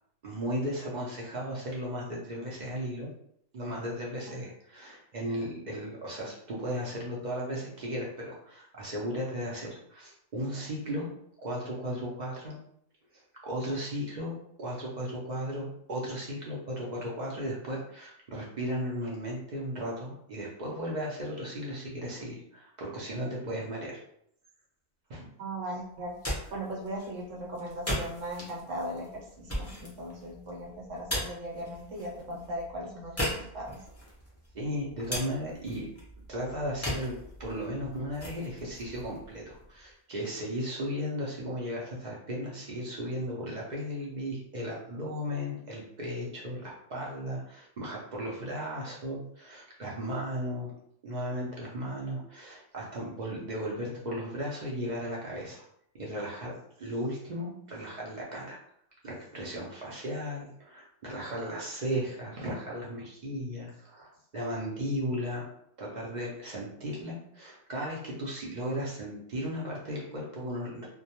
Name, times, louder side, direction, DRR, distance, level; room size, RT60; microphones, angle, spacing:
voice 1, 0.2-3.1 3.5-11.1 11.4-12.6 13.1-24.0 25.1-25.3 34.5-35.9 36.3-50.7 51.0-55.6 55.9-56.5 56.8-58.6 59.0-65.5 65.8-70.9, equal, 55° right, -4 dB, 0.5 m, -35 dB
voice 2, 25.4-33.8, right 1 dB, 75° right, -2 dB, 1.0 m, -38 dB
sound 1, 25.9-39.9, equal, 20° left, 0.4 m, -39 dB
2.2 x 2.1 x 2.8 m, 0.71 s
omnidirectional pair, 1.3 m